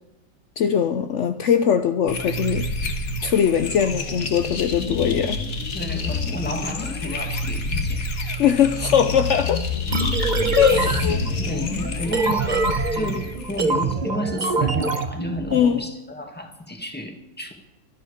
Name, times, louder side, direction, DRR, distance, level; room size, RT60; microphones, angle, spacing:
voice 1, 0.6-2.9 3.2-5.4 8.4-9.6 10.6-11.2 15.5-15.8, left 8 dB, 70° left, 0.7 m, -21 dB
sound 1, 2.1-14.0, left 3 dB, 50° left, 1.8 m, -28 dB
voice 2, 5.7-8.1 8.3-8.4 10.7-17.5, left 1 dB, 5° left, 1.8 m, -32 dB
sound 2, 9.9-15.6, right 4 dB, 35° right, 0.8 m, -25 dB
24.5 x 9.3 x 5.1 m
omnidirectional pair, 2.0 m